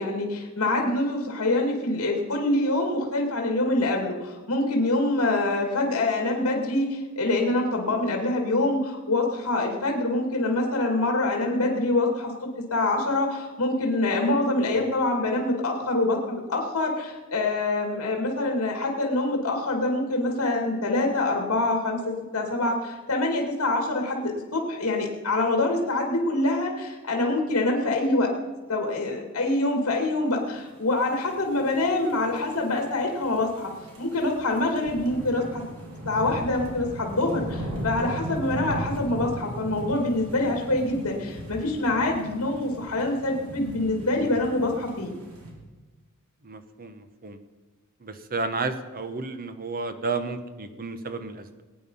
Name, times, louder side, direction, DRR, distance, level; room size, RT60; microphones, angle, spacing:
voice 1, 0.0-12.3 12.7-28.3 28.7-33.7 34.0-35.6 36.1-45.2, left 2 dB, 70° left, 1 dB, 2.4 m, -25 dB
sound 1, 31.2-45.5, equal, 80° right, 3.5 m, -37 dB
voice 2, 46.4-47.4 48.0-51.6, right 3 dB, 40° right, 9 dB, 1.1 m, -32 dB
20.5 x 9.4 x 5.6 m, 1.3 s
head